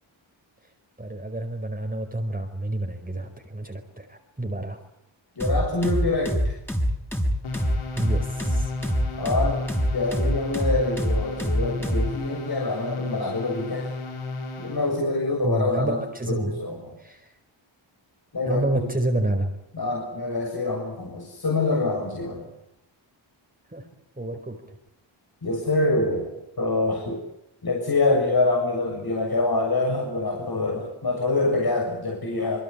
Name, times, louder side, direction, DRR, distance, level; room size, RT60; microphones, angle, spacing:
voice 1, 1.0-4.8 8.0-8.7 15.4-16.6 17.0-17.3 18.4-19.5 23.7-23.8 24.2-24.6, right 1 dB, 15° right, 3 dB, 4.8 m, -29 dB
voice 2, 5.4-6.6 9.2-9.6 9.9-13.9 14.6-17.0 18.3-18.9 19.7-22.5 25.4-26.3 26.6-27.2 27.6-32.6, left 2 dB, 50° left, 1 dB, 7.2 m, -25 dB
sound 1, 5.4-12.1, equal, 5° left, 6.8 m, -24 dB
sound 2, 7.4-15.0, left 3 dB, 90° left, 4.6 m, -34 dB
25.5 x 23.0 x 8.6 m, 0.84 s
cardioid pair, 50°, 48 cm